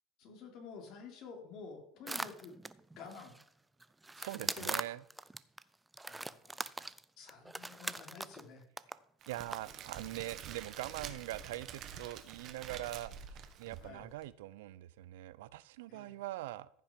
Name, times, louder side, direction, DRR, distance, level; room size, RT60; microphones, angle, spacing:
voice 1, 0.2-2.7 3.0-3.3 4.3-4.7 6.1-6.7 7.2-8.6 13.8-14.1 15.9-16.2, left 5 dB, 55° left, 2 dB, 2.9 m, -50 dB
sound 1, 2.1-3.4 3.8-5.6 5.9-8.5 8.8-8.9 9.2-9.6 9.9-10.0, right 2 dB, 10° right, 0.4 m, -41 dB
voice 2, 4.2-5.0 9.3-13.1 13.6-16.7, right 16 dB, 90° right, 18 dB, 0.5 m, -42 dB
Crackle, 9.2-14.3, right 8 dB, 45° right, 1.2 m, -48 dB
14.5 x 5.9 x 5.1 m, 0.70 s
supercardioid pair, 135°, 0 cm